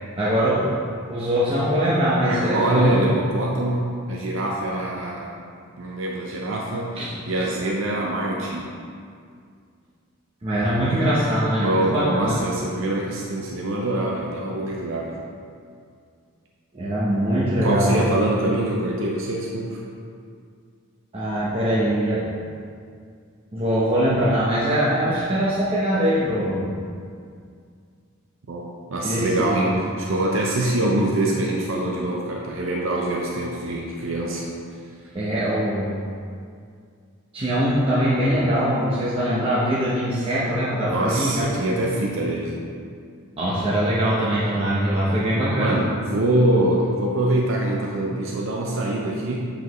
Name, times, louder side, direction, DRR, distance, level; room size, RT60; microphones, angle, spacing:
voice 1, 0.2-0.7 1.1-2.9 7.0-7.2 10.4-12.3 16.7-18.0 21.1-22.3 23.5-26.7 29.0-29.7 35.1-36.0 37.3-41.5 43.4-45.8, equal, 25° right, -9 dB, 0.8 m, -22 dB
voice 2, 2.2-5.4 5.8-6.9 7.3-8.7 11.6-15.2 17.6-19.8 28.5-34.4 40.9-42.6 45.5-49.5, right 1 dB, 60° right, -2 dB, 0.6 m, -24 dB
8.1 x 5.0 x 3.1 m, 2.2 s
head